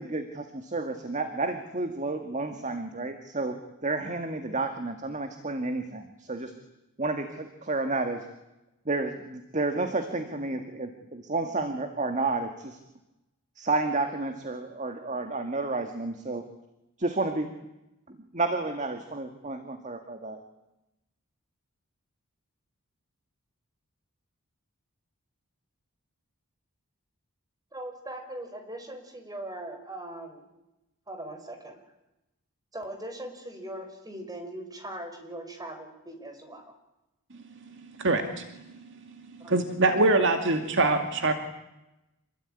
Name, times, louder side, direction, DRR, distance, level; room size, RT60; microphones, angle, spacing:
voice 1, 0.0-6.5 7.0-8.2 8.9-12.8 13.6-16.5 17.0-17.5 18.1-20.4, right 3 dB, 35° right, 7 dB, 1.9 m, -31 dB
voice 2, 27.7-30.5 31.1-31.8 32.7-36.7 39.4-39.5, right 1 dB, 15° right, 6 dB, 5.1 m, -40 dB
voice 3, 38.0-38.5 39.5-41.3, right 2 dB, 55° right, 6 dB, 2.3 m, -23 dB
27.5 x 21.0 x 10.0 m, 0.94 s
head